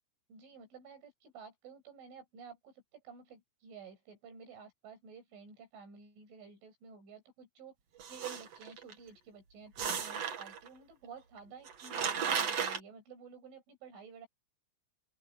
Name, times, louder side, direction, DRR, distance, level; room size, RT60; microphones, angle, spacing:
voice 1, 0.3-7.8 8.1-14.3, right 6 dB, 70° right, 10.0 m, -52 dB
sound 1, 8.0-8.9 9.8-10.7 11.4-11.5 11.7-12.8, right 7 dB, 50° right, 2.1 m, -35 dB
open air
omnidirectional pair, 5.6 m